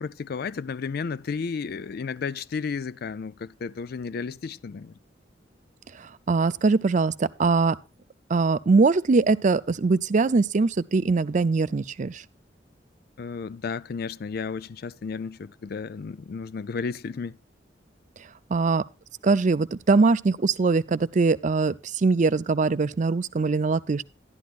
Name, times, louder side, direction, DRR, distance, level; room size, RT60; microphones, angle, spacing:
voice 1, 0.0-5.0 13.2-17.4, left 5 dB, 55° left, 0.4 m, -33 dB
voice 2, 6.0-7.8 8.3-12.2 18.5-18.8 19.2-24.0, right 4 dB, 40° right, 0.5 m, -22 dB
11.5 x 11.0 x 2.4 m
head